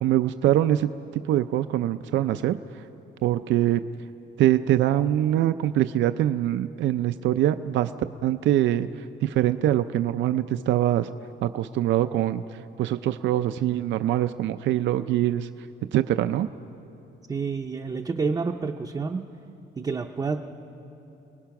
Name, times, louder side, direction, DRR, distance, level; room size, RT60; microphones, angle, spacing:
voice 1, 0.0-2.6 3.2-3.8 4.4-7.9 8.2-11.1 11.4-15.5 15.9-16.5, right 12 dB, 75° right, 10 dB, 0.5 m, -23 dB
voice 2, 17.3-19.3 19.8-20.4, right 4 dB, 20° right, 1 dB, 0.6 m, -28 dB
29.5 x 20.0 x 5.9 m, 2.8 s
cardioid pair, 180°, 19 cm